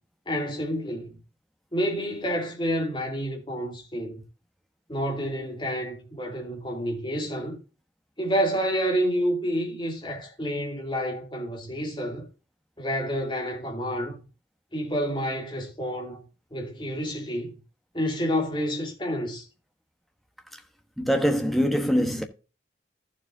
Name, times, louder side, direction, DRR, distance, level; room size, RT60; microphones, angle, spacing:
voice 1, 0.3-1.2 1.7-4.2 4.9-7.6 8.2-12.3 12.8-14.2 14.7-16.2 16.5-17.5 17.9-19.5, equal, 25° left, 2.9 m, -29 dB
voice 2, 21.0-22.2, equal, ahead, 1.2 m, -23 dB
14.5 x 7.2 x 2.7 m
head